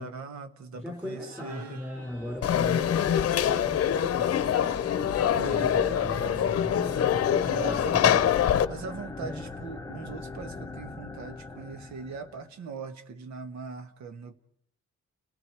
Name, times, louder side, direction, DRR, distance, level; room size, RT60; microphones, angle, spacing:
voice 1, 0.0-1.8 4.9-5.7 7.2-8.0 8.7-14.3, right 5 dB, 70° right, 9 dB, 1.5 m, -41 dB
voice 2, 0.7-4.6 5.5-6.7 7.5-8.5 9.2-9.4, left 1 dB, 10° right, -1 dB, 5.5 m, -38 dB
Laughter, 0.9-8.4, equal, 55° right, 5.5 m, -53 dB
sound 1, 2.0-12.5, left 2 dB, 10° left, 0.9 m, -40 dB
Conversation / Crowd, 2.4-8.7, left 9 dB, 55° left, 0.8 m, -24 dB
30.0 x 18.5 x 4.8 m, 0.69 s
wide cardioid pair, 165°, 29 cm